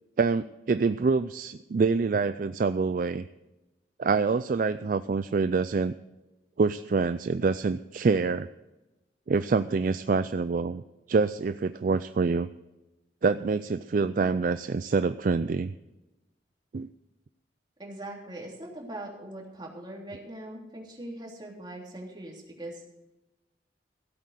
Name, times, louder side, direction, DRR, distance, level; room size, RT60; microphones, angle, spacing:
voice 1, 0.2-3.2 4.0-5.9 6.6-8.5 9.3-10.8 11.1-12.5 13.2-15.7 16.7-16.9, right 4 dB, 50° right, 12 dB, 0.4 m, -26 dB
voice 2, 17.8-22.8, right 1 dB, 25° right, -2 dB, 3.3 m, -41 dB
16.0 x 8.4 x 6.6 m, 1.0 s
head